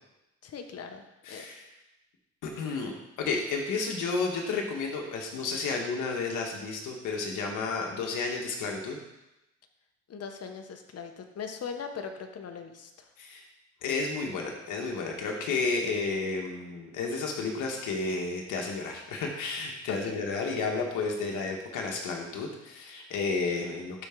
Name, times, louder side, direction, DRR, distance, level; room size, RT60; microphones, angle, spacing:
voice 1, 0.4-1.5 10.1-13.1 19.9-20.2, left 6 dB, 55° left, 6 dB, 1.1 m, -40 dB
voice 2, 1.2-1.6 2.4-9.0 13.2-13.5 13.8-24.1, left 4 dB, 85° left, 1 dB, 1.6 m, -32 dB
12.0 x 4.4 x 3.8 m, 0.94 s
cardioid pair, 90°, 30 cm